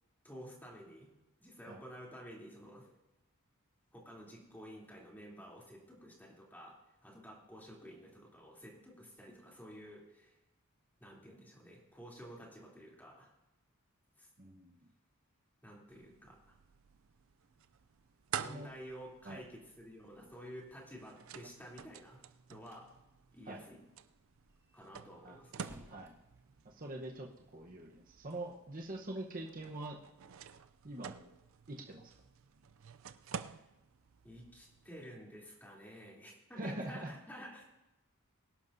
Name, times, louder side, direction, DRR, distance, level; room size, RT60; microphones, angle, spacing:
voice 1, 0.2-1.1 1.4-2.9 3.9-6.8 7.0-10.4 11.0-13.3 14.2-14.3 15.6-16.6 18.4-22.2 22.5-22.9 23.3-23.8 24.7-25.7 33.3-33.6 34.2-37.6, equal, 10° left, -3 dB, 3.3 m, -51 dB
voice 2, 14.4-14.9 18.4-18.7 19.2-19.4 23.5-23.6 25.2-25.4 25.9-26.1 26.6-30.0 30.8-31.3 31.7-32.1 36.6-37.1, right 1 dB, 40° right, 0 dB, 1.1 m, -44 dB
sound 1, 15.9-35.0, right 7 dB, 65° right, 0.5 m, -50 dB
sound 2, 22.5-22.9 23.2-23.3 23.6-23.7 24.1-27.1, equal, 15° right, 2.0 m, -59 dB
23.5 x 11.5 x 2.7 m, 0.98 s
head